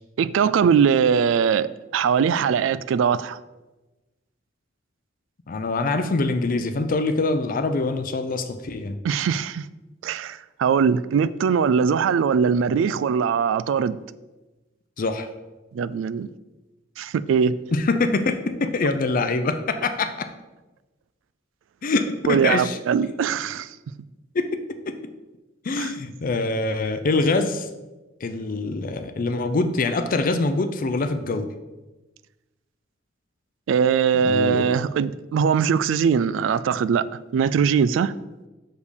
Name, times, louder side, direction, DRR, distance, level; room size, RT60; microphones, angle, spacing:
voice 1, 0.2-3.4 9.0-9.7 10.0-14.0 15.7-16.3 17.0-17.6 22.3-23.8 25.8-25.9 33.7-37.1 37.3-38.1, right 6 dB, 75° right, 0.3 m, -21 dB
voice 2, 5.5-9.0 15.0-15.3 17.7-20.3 21.8-22.8 24.3-24.6 24.9-25.0 25.6-27.7 28.2-31.5 34.2-34.7, left 3 dB, 45° left, 0.5 m, -24 dB
6.5 x 5.2 x 5.0 m
head